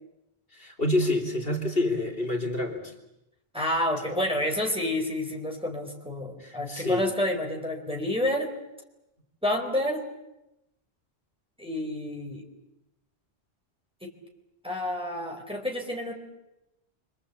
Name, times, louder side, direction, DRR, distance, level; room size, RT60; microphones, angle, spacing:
voice 1, 0.5-2.9 6.4-7.0, left 1 dB, 60° left, 2 dB, 3.5 m, -27 dB
voice 2, 3.5-8.5 9.4-10.0 11.6-12.4 14.0-14.1 14.6-16.1, left 1 dB, 5° right, 0 dB, 4.2 m, -29 dB
28.5 x 24.0 x 8.5 m, 0.92 s
omnidirectional pair, 1.1 m